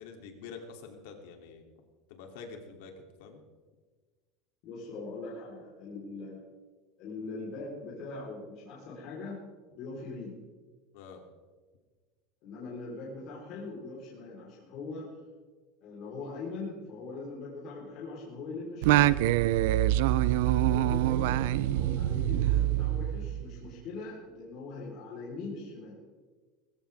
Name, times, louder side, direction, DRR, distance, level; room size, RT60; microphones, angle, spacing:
voice 1, 0.0-1.6 2.1-3.4 10.9-11.2 20.2-20.4, left 5 dB, 70° left, 3 dB, 2.8 m, -47 dB
voice 2, 4.6-6.5 7.0-9.4 9.7-10.4 12.4-15.1 15.8-19.2 20.5-26.0, left 3 dB, 45° left, -5 dB, 3.9 m, -41 dB
Singing, 18.8-23.6, right 13 dB, 75° right, 0.5 m, -25 dB
21.0 x 15.0 x 3.5 m, 1.4 s
cardioid pair, 175°, 0 cm